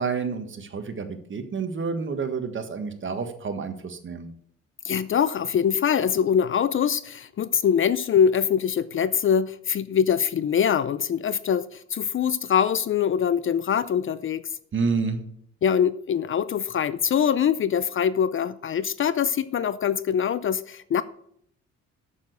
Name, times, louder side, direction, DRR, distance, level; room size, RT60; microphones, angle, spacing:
voice 1, 0.0-4.3 14.7-15.2, right 5 dB, 40° right, 1.5 m, -29 dB
voice 2, 4.8-14.4 15.6-21.0, left 8 dB, 45° left, 0.5 m, -23 dB
7.1 x 7.0 x 7.9 m
cardioid pair, 90°, 30 cm